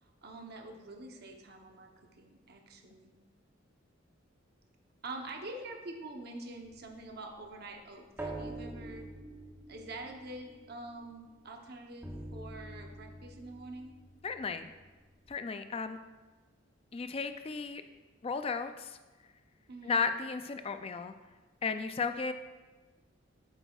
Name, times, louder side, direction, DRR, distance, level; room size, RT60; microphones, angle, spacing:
voice 1, 0.0-3.1 5.0-9.1 9.7-14.0 19.7-20.0, right 2 dB, 50° right, 3 dB, 0.8 m, -46 dB
sound 1, 6.6-11.5 12.0-15.3, right 2 dB, 10° right, 0.8 m, -47 dB
voice 2, 14.2-14.7 15.3-16.0 16.9-17.8 18.2-19.0 19.8-21.1 21.6-22.3, left 5 dB, 30° left, 9 dB, 0.3 m, -34 dB
8.1 x 7.9 x 2.4 m, 1.2 s
head